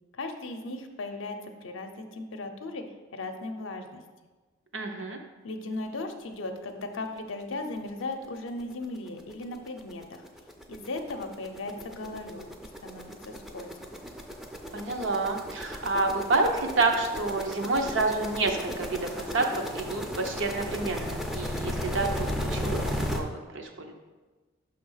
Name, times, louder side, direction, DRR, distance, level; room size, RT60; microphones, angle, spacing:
voice 1, 0.1-2.8 3.1-4.0 5.4-10.2 10.7-12.5 12.8-13.7, left 2 dB, 70° left, 5 dB, 0.6 m, -37 dB
voice 2, 4.7-5.2 14.7-23.9, right 3 dB, 65° right, 3 dB, 0.7 m, -29 dB
sound 1, 7.8-7.9 8.2-8.4 8.6-23.2, equal, ahead, 0.4 m, -35 dB
6.1 x 3.3 x 5.6 m, 1.3 s
head